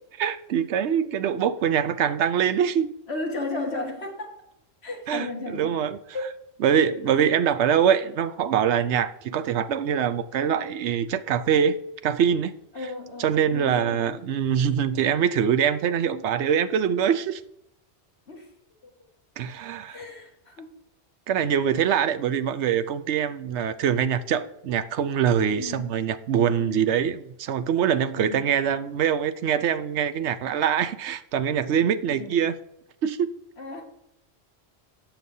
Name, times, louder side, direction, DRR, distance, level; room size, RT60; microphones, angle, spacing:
voice 1, 0.2-2.9 5.1-6.0 6.6-12.5 13.2-17.4 19.4-20.0 21.3-32.6 33.0-33.3, right 8 dB, 90° right, 1.0 m, -24 dB
voice 2, 3.1-4.4 4.8-5.8 6.1-6.4 7.1-7.2 12.7-14.2 18.3-18.5 18.8-18.9 19.9-20.7 25.6-25.9 26.6-26.9 28.1-28.5 32.1-32.4 33.6-33.8, left 2 dB, 70° left, 2.1 m, -34 dB
17.5 x 7.0 x 2.7 m
omnidirectional pair, 1.1 m